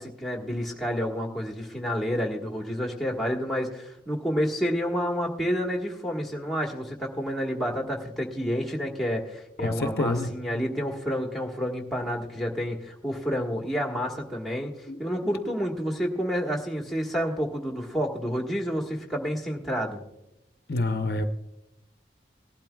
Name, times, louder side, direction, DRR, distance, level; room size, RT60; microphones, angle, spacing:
voice 1, 0.0-20.0, equal, ahead, -1 dB, 1.5 m, -29 dB
voice 2, 9.6-10.3 14.9-15.0 20.7-21.2, left 2 dB, 60° left, 8 dB, 0.7 m, -27 dB
19.0 x 12.0 x 2.3 m, 0.92 s
head